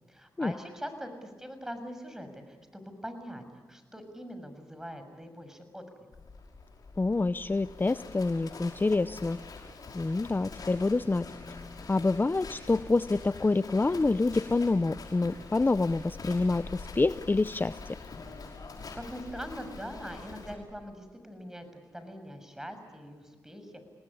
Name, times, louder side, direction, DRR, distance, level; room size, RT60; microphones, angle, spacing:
voice 1, 0.1-5.8 18.9-23.8, equal, 5° right, 8 dB, 6.6 m, -42 dB
Livestock farm animals working animals, 6.1-20.5, left 4 dB, 60° left, 5.8 m, -45 dB
voice 2, 7.0-9.4 9.9-11.3 11.9-17.8, left 3 dB, 30° left, 14 dB, 0.7 m, -27 dB
28.0 x 19.0 x 9.9 m, 1.5 s
cardioid pair, 50°, 7 cm